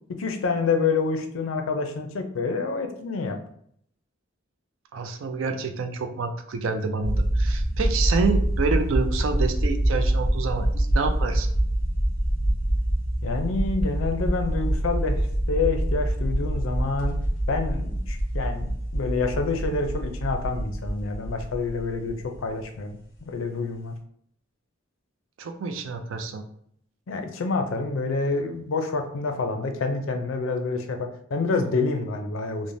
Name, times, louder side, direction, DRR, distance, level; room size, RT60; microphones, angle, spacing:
voice 1, 0.1-3.4 13.2-15.2 15.5-17.2 17.5-23.9 27.1-32.7, left 4 dB, 85° left, 5 dB, 0.4 m, -27 dB
voice 2, 4.9-11.5 25.4-26.4, right 4 dB, 80° right, 7 dB, 0.4 m, -28 dB
sound 1, 7.0-22.6, right 1 dB, 45° left, 1.0 m, -25 dB
3.1 x 2.0 x 2.6 m, 0.67 s
head